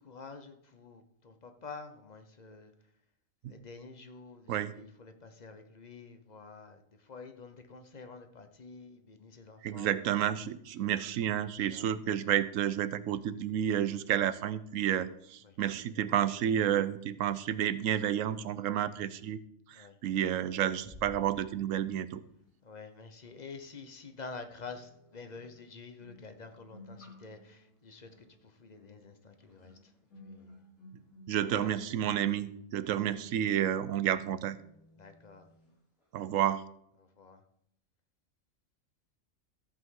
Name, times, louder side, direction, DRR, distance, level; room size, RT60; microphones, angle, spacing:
voice 1, 0.0-2.7 3.4-9.9 10.8-10.9 11.4-11.9 15.4-15.6 19.7-20.0 22.6-29.9 30.2-30.6 31.4-31.8 35.0-35.5 37.0-37.4, left 4 dB, 35° left, 7 dB, 1.0 m, -49 dB
voice 2, 9.6-19.4 19.7-22.2 31.3-34.6 36.1-36.6, right 10 dB, 90° right, 15 dB, 1.0 m, -30 dB
sound 1, 20.9-22.3, left 1 dB, 10° right, 1.7 m, -53 dB
sound 2, 23.2-23.3 24.6-35.7 36.0-36.3, left 1 dB, 85° left, 3.9 m, -57 dB
13.5 x 8.2 x 3.8 m, 0.73 s
omnidirectional pair, 1.3 m